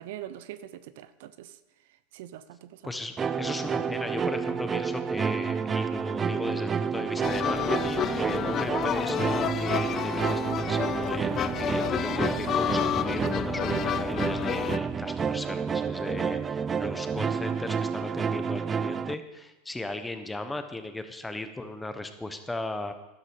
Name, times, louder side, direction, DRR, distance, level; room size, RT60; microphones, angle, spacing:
voice 1, 0.0-1.6 2.1-2.8, right 12 dB, 70° right, 15 dB, 0.6 m, -42 dB
voice 2, 2.8-22.9, left 2 dB, 10° left, 8 dB, 1.3 m, -36 dB
sound 1, 3.2-19.1, right 6 dB, 25° right, 0.4 m, -30 dB
sound 2, 7.2-14.8, left 10 dB, 40° left, 0.5 m, -30 dB
12.0 x 11.5 x 5.2 m, 1.0 s
hypercardioid pair, 100°, 0 cm